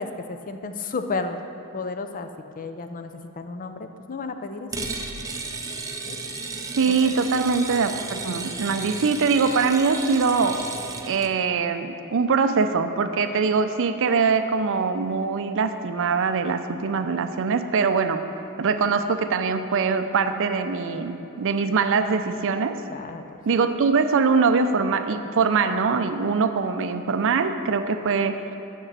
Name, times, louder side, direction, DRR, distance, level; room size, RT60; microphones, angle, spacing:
voice 1, 0.0-1.4 1.7-2.3 2.6-4.9 6.1-6.2 7.0-7.1 22.9-23.2, left 3 dB, 40° left, 8 dB, 0.5 m, -32 dB
sound 1, 4.7-11.3, right 3 dB, 15° right, 0.5 m, -34 dB
voice 2, 6.8-10.6 11.0-18.2 18.6-22.8 23.4-28.4, right 5 dB, 60° right, 9 dB, 0.5 m, -23 dB
6.8 x 6.6 x 7.4 m, 3.0 s
head